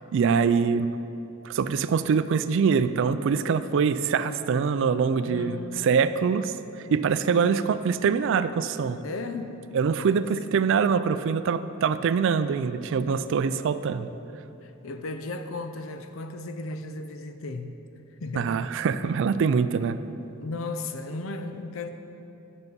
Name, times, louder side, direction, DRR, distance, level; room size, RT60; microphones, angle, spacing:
voice 1, 0.1-0.9 1.4-5.6 5.8-6.5 6.9-9.0 9.7-14.1 18.4-20.0, right 6 dB, 65° right, 13 dB, 0.3 m, -24 dB
voice 2, 5.1-6.4 6.9-7.8 9.0-9.5 10.0-10.2 14.6-17.7 18.2-18.7 20.4-21.9, left 2 dB, 70° left, 8 dB, 0.6 m, -36 dB
8.3 x 6.5 x 5.3 m, 2.8 s
head